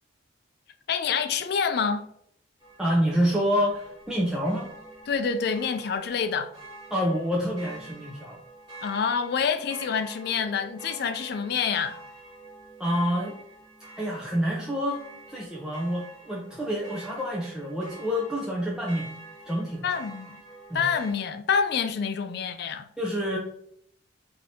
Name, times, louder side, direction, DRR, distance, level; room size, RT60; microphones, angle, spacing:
voice 1, 0.9-2.1 5.1-6.5 8.8-12.0 19.8-20.4 20.7-22.9, left 6 dB, 55° left, 0.3 m, -27 dB
sound 1, 2.6-21.1, right 2 dB, 20° right, 1.5 m, -47 dB
voice 2, 2.8-4.7 6.9-8.4 12.8-13.4 14.0-15.0 15.3-19.1 19.4-19.9 20.7-20.8 23.0-23.4, equal, 5° right, 0.5 m, -27 dB
4.9 x 2.7 x 2.7 m
head